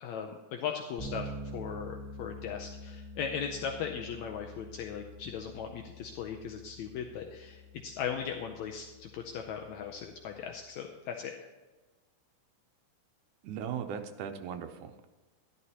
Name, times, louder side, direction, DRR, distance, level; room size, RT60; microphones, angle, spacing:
voice 1, 0.0-11.5, left 7 dB, 75° left, 3 dB, 1.8 m, -38 dB
Bass guitar, 1.0-10.6, equal, 10° left, 2.3 m, -47 dB
voice 2, 13.4-15.1, right 8 dB, 85° right, 6 dB, 2.2 m, -38 dB
12.5 x 11.0 x 2.9 m, 1.2 s
omnidirectional pair, 3.6 m